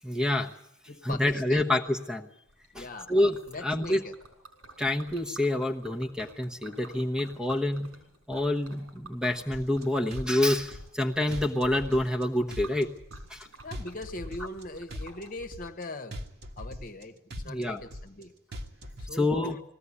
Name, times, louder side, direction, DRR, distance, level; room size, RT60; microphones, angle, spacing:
voice 1, 0.0-0.5 1.0-2.3 2.7-4.0 4.8-7.9 8.3-12.9 13.3-13.5 17.5-17.8 19.1-19.6, left 1 dB, 5° right, 5 dB, 1.1 m, -27 dB
voice 2, 0.9-1.7 2.7-3.1 3.5-4.1 13.6-16.2 16.6-17.2 17.4-18.3 19.0-19.6, left 2 dB, 40° left, 7 dB, 1.2 m, -40 dB
Liquid, 2.5-15.7, right 2 dB, 90° right, 6.6 m, -51 dB
sound 1, 9.5-9.8 10.1-11.0 11.3-12.2 12.5-13.4 13.7-14.6 14.9-15.8 16.1-17.0 17.3-18.2 18.5-19.1, equal, 50° right, 1.7 m, -40 dB
20.0 x 15.5 x 9.7 m, 0.76 s
head